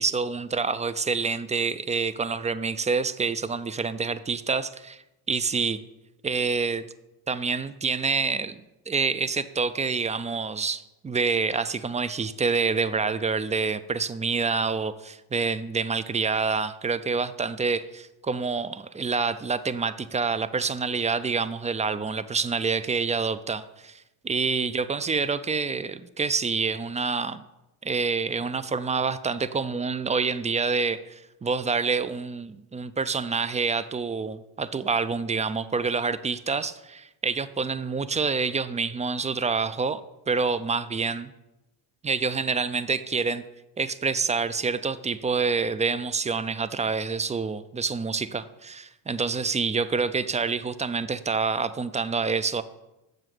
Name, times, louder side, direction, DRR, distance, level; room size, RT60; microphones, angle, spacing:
voice 1, 0.0-5.0 5.3-5.8 6.2-6.8 7.3-27.4 27.8-40.0 40.3-41.3 42.0-43.4 43.8-52.6, right 4 dB, 15° right, 15 dB, 0.3 m, -27 dB
7.8 x 6.2 x 7.6 m, 0.95 s
cardioid pair, 95°, 48 cm